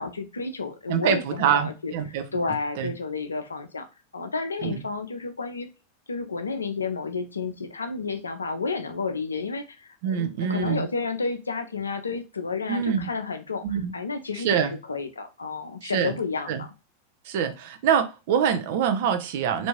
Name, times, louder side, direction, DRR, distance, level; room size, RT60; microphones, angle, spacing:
voice 1, 0.0-3.9 4.1-5.7 6.1-13.6 13.9-16.7, left 4 dB, 75° left, 8 dB, 0.5 m, -31 dB
voice 2, 0.9-2.2 2.8-2.9 4.6-4.8 10.0-10.9 12.7-13.1 13.6-13.9 14.4-14.7 15.8-16.2 16.5-16.6 17.3-19.7, right 8 dB, 50° right, 7 dB, 0.6 m, -25 dB
3.4 x 2.6 x 3.0 m, 0.29 s
figure-of-eight pair, 90°, 0 cm